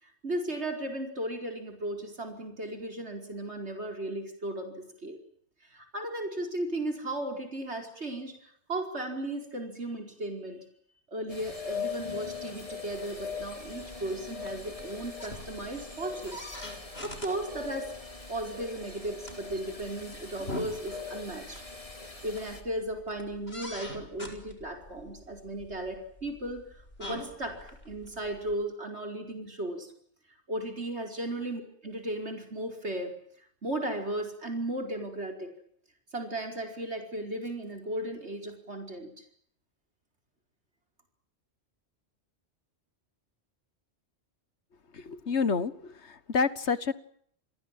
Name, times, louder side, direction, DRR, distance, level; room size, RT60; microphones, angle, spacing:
voice 1, 0.0-5.2 5.6-10.6 11.1-16.4 17.0-17.9 18.3-21.6 22.2-25.9 26.2-29.9 30.3-35.5 36.1-39.2, right 1 dB, 80° right, 4 dB, 5.1 m, -36 dB
sound 1, 11.3-22.6, left 5 dB, 30° left, 3.8 m, -41 dB
sound 2, 12.9-28.6, left 1 dB, 65° left, 6.2 m, -45 dB
voice 2, 44.9-46.9, left 5 dB, 80° left, 16 dB, 1.8 m, -29 dB
30.0 x 23.0 x 7.6 m, 0.64 s
omnidirectional pair, 1.1 m